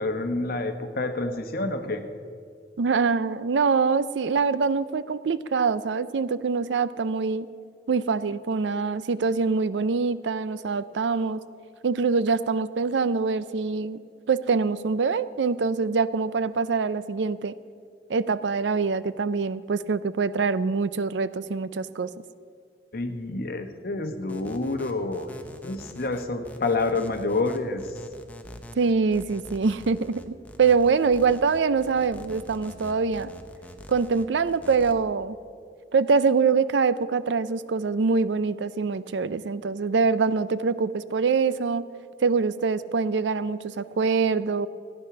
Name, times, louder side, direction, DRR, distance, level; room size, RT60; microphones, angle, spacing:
voice 1, 0.0-2.0 22.9-25.3 25.6-27.9, left 3 dB, 55° left, 7 dB, 1.1 m, -28 dB
voice 2, 2.8-7.5 7.9-11.4 11.8-14.0 14.3-17.5 18.1-22.1 28.8-33.3 33.9-35.4 35.9-41.9 42.2-44.7, right 5 dB, 80° right, 16 dB, 0.5 m, -24 dB
sound 1, 24.3-34.9, equal, 10° left, 0.8 m, -44 dB
15.0 x 9.9 x 6.0 m, 2.2 s
head